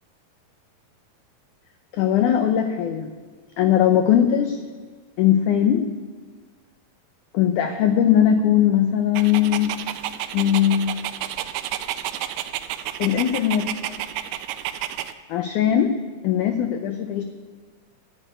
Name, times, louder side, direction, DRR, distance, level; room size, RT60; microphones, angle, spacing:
voice 1, 1.9-3.1 3.6-4.6 5.2-5.9 7.3-9.7 10.3-11.1 13.0-13.7 15.3-15.9 16.2-17.2, left 10 dB, 85° left, 7 dB, 1.7 m, -19 dB
Dog, 9.1-15.1, right 12 dB, 85° right, 2.6 m, -31 dB
11.5 x 8.9 x 9.8 m, 1.5 s
omnidirectional pair, 4.5 m